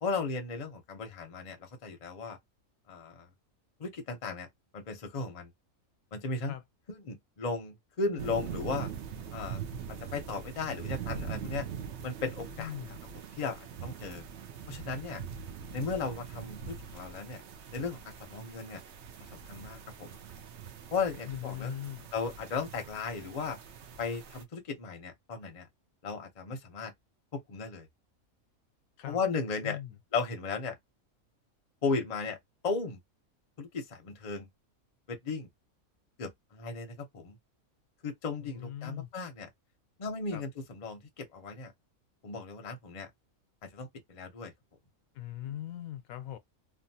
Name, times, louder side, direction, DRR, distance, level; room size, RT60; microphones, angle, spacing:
voice 1, 0.0-2.4 2.9-3.3 3.8-4.5 4.7-5.5 6.1-6.5 6.9-8.9 9.3-9.6 10.1-11.7 12.0-12.7 13.4-14.2 14.7-15.2 15.7-17.4 17.7-18.8 19.3-20.2 20.9-21.7 22.1-23.6 24.0-25.7 26.0-26.9 27.3-27.9 29.1-29.8 30.1-30.8 31.8-32.4 32.6-33.0 33.6-34.5 35.1-35.5 36.2-37.4 38.0-39.5 40.0-41.7 42.2-43.1 43.6-44.5 45.4-45.6, left 4 dB, 40° left, 0.6 m, -36 dB
sound 1, 8.2-24.4, right 7 dB, 65° right, 0.8 m, -42 dB
voice 2, 12.6-13.0 21.2-22.1 29.0-29.2 29.6-30.0 38.4-39.1 40.3-40.4 45.1-46.4, left 12 dB, 80° left, 1.0 m, -40 dB
3.0 x 2.3 x 2.7 m
omnidirectional pair, 1.5 m